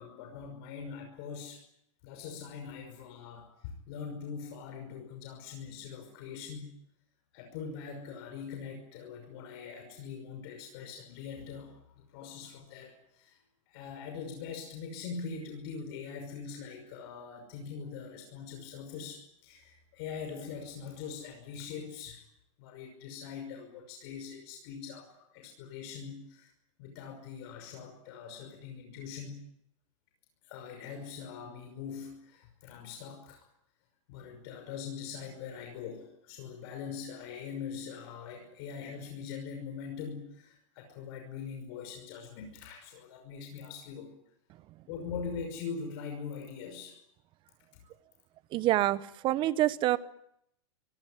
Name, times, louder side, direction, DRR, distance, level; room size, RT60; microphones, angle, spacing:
voice 1, 0.0-1.6 2.0-6.7 7.3-13.4 13.7-22.2 22.6-26.5 26.8-29.4 30.4-33.4 34.1-44.1 44.9-47.0, left 6 dB, 50° left, 4 dB, 5.8 m, -42 dB
voice 2, 48.5-50.0, right 14 dB, 30° right, 16 dB, 1.0 m, -27 dB
24.5 x 18.0 x 10.0 m, 0.77 s
supercardioid pair, 150°, 16 cm